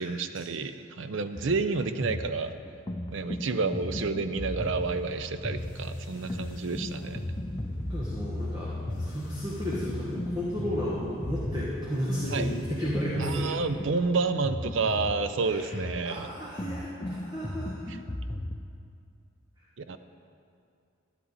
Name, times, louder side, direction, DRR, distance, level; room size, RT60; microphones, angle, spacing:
voice 1, 0.0-2.5 3.1-7.2 12.3-12.5 13.2-16.3 17.9-18.0 19.8-20.0, right 4 dB, 60° right, 11 dB, 0.5 m, -30 dB
sound 1, 1.4-18.6, left 1 dB, 20° left, 0.5 m, -36 dB
sound 2, 4.6-13.8, left 1 dB, 40° left, 1.3 m, -40 dB
voice 2, 7.8-13.5 15.4-15.8 16.0-17.8, equal, 15° right, -7 dB, 1.4 m, -33 dB
11.5 x 11.0 x 4.1 m, 2.5 s
head